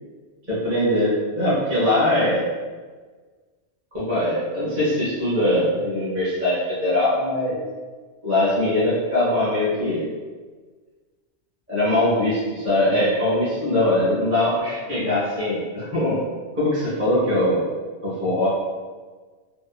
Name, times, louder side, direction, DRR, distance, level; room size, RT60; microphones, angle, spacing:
voice 1, 0.5-2.5 3.9-7.6 8.2-10.1 11.7-16.2 16.5-17.7 18.0-18.5, left 1 dB, 15° right, -12 dB, 0.8 m, -21 dB
2.9 x 2.2 x 2.3 m, 1.4 s
omnidirectional pair, 1.2 m